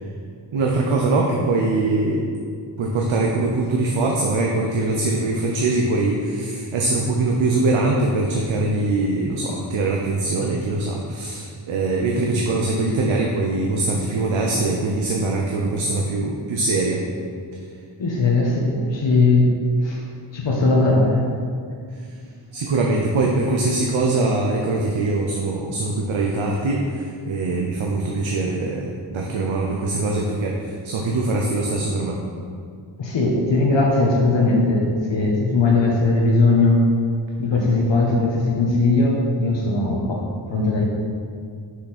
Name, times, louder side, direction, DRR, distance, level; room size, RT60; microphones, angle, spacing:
voice 1, 0.5-2.3 2.8-17.0 22.5-32.2, right 2 dB, 70° right, -1 dB, 0.9 m, -22 dB
voice 2, 18.0-20.0 20.3-21.3 33.0-36.8 37.4-40.2 40.5-40.8, left 2 dB, 60° left, -2 dB, 1.2 m, -19 dB
6.3 x 5.8 x 4.2 m, 2.2 s
cardioid pair, 80°, 49 cm